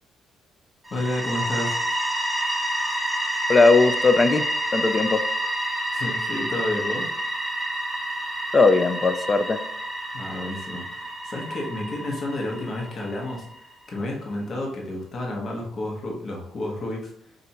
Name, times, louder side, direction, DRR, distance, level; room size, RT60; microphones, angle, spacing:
sound 1, 0.8-13.6, right 1 dB, 15° right, 0.9 m, -29 dB
voice 1, 0.9-1.8 5.9-7.1 10.1-13.5 13.9-17.1, left 1 dB, 50° left, -1 dB, 1.0 m, -30 dB
voice 2, 3.5-4.5 4.7-5.2 8.5-9.6, left 3 dB, 30° left, 10 dB, 0.4 m, -18 dB
2.7 x 2.6 x 4.3 m, 0.71 s
supercardioid pair, 75°, 0 cm